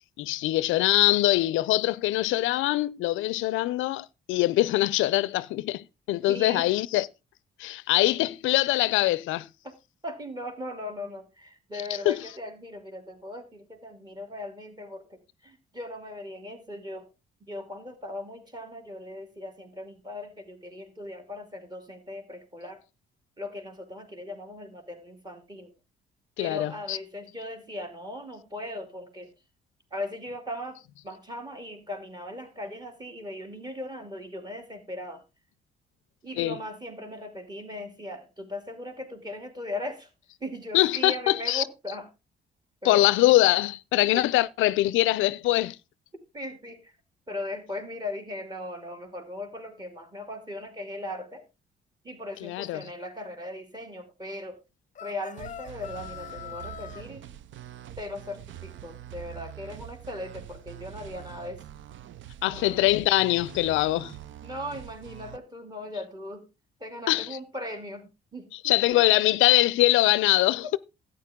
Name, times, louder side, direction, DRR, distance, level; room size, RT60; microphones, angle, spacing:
voice 1, 0.2-7.1 7.6-9.5 12.1-12.2 26.4-27.0 36.4-36.5 40.7-41.6 42.8-45.8 52.4-52.8 62.4-64.1 67.1-67.3 68.6-70.8, left 16 dB, 90° left, 0.4 m, -23 dB
voice 2, 6.3-6.7 9.6-9.7 10.0-17.1 17.4-22.8 23.4-25.7 26.4-29.3 29.9-35.2 36.2-40.1 40.4-42.1 42.8-43.0 44.1-44.3 46.3-46.9 47.3-51.4 52.0-54.6 55.0-57.2 58.0-61.6 62.4-62.8 64.4-66.5 66.8-69.0 70.6-70.7, left 1 dB, 20° right, 2.8 m, -38 dB
sound 1, 54.9-57.0, left 9 dB, 40° left, 0.7 m, -41 dB
sound 2, 55.4-65.4, right 12 dB, 75° right, 0.6 m, -44 dB
12.0 x 8.9 x 3.6 m
cardioid pair, 90°, 20 cm